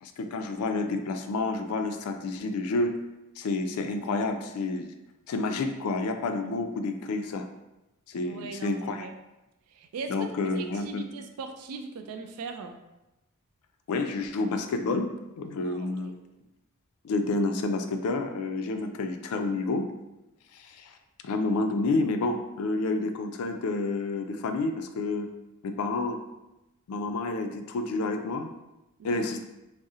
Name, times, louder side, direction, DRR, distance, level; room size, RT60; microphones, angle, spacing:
voice 1, 0.0-3.0 3.4-4.9 5.3-7.4 8.1-9.1 10.1-11.0 13.9-15.1 15.4-16.1 17.0-19.9 20.5-20.9 21.2-25.3 25.6-26.2 26.9-28.5 29.0-29.4, left 3 dB, 70° left, 6 dB, 0.3 m, -29 dB
voice 2, 8.2-9.2 9.7-12.8 15.6-16.1 29.0-29.2, right 4 dB, 75° right, 6 dB, 0.4 m, -40 dB
2.7 x 2.0 x 3.6 m, 0.97 s
head